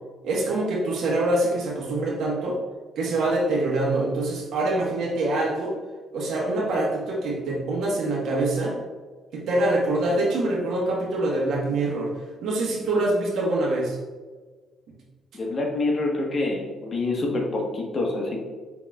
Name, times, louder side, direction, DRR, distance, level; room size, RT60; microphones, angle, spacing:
voice 1, 0.2-2.6 3.0-5.7 6.1-8.8 9.3-12.1 12.4-14.0, right 2 dB, 75° right, -2 dB, 1.2 m, -25 dB
voice 2, 15.3-18.4, left 2 dB, 40° left, -1 dB, 1.2 m, -26 dB
5.5 x 4.0 x 2.4 m, 1.4 s
cardioid pair, 90°, 0 cm